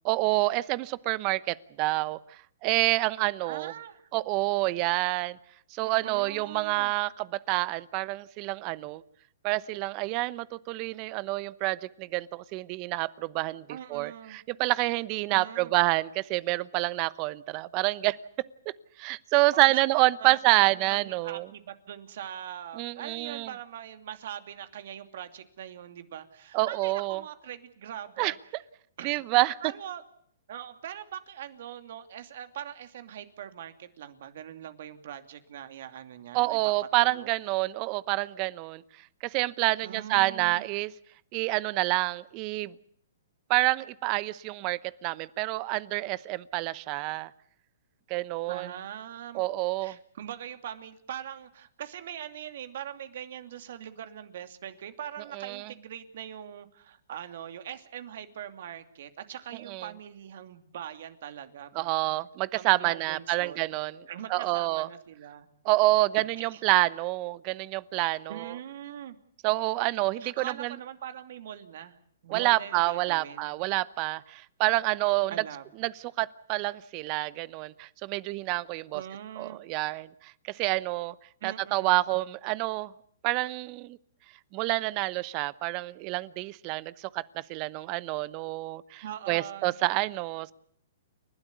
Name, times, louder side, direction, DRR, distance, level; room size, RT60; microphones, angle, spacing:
voice 1, 0.0-2.2 2.6-3.7 4.1-5.4 5.7-9.0 9.4-13.6 13.9-18.2 19.0-21.5 22.8-23.5 26.5-27.2 28.2-28.3 29.0-29.6 36.3-38.8 39.2-40.9 41.3-42.7 43.5-47.3 48.1-48.7 49.3-50.0 55.3-55.7 59.7-59.9 61.7-63.9 64.3-64.9 65.6-68.5 69.4-70.7 72.3-75.3 75.8-75.9 76.2-79.0 79.4-81.1 81.4-82.9 83.2-84.0 84.5-90.5, right 20 dB, 35° right, 19 dB, 0.9 m, -28 dB
voice 2, 3.4-4.1 5.8-6.9 13.7-14.4 15.3-15.7 19.5-28.3 29.0-29.2 29.6-30.0 30.5-37.3 39.8-40.7 48.5-49.4 49.8-61.9 62.5-63.6 64.1-65.5 66.5-66.6 68.3-69.2 70.2-72.0 72.2-73.5 74.7-74.8 75.3-75.6 78.9-79.6 81.4-82.0 89.0-89.8, right 10 dB, 60° right, 9 dB, 2.7 m, -42 dB
29.5 x 12.5 x 9.6 m, 0.64 s
hypercardioid pair, 135°, 0 cm